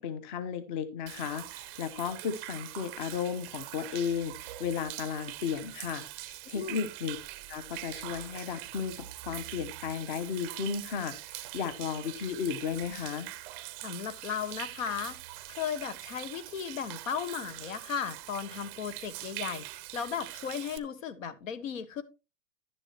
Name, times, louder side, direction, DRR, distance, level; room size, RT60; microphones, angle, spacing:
voice 1, 0.0-7.2 7.5-13.3, left 7 dB, 40° left, 1.0 m, -34 dB
Human voice / Rain / Stream, 1.1-20.8, right 17 dB, 20° right, 0.5 m, -43 dB
voice 2, 13.8-15.2 15.5-19.6 19.9-22.0, left 7 dB, 80° left, 1.5 m, -35 dB
11.0 x 9.9 x 2.9 m
supercardioid pair, 160°, 39 cm